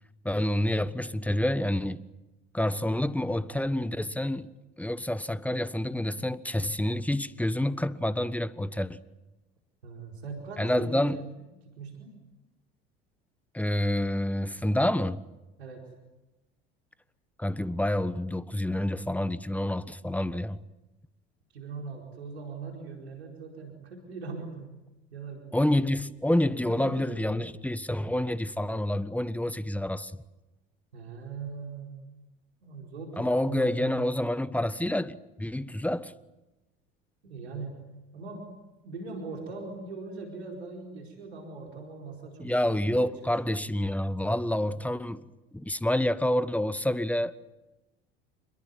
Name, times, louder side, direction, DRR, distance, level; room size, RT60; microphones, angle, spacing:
voice 1, 0.2-2.1 2.5-4.5 4.8-9.0 10.6-11.2 13.5-15.2 17.4-20.6 25.5-30.1 33.2-36.1 42.4-45.2 45.5-47.3, left 1 dB, 5° left, 1.3 m, -28 dB
voice 2, 9.8-11.3 11.6-12.2 15.6-15.9 21.5-24.8 25.1-26.0 26.6-27.4 30.9-31.9 32.6-34.1 37.2-38.5 38.8-43.3, right 4 dB, 90° right, 4.7 m, -41 dB
28.0 x 22.0 x 9.6 m
hypercardioid pair, 70°, 31 cm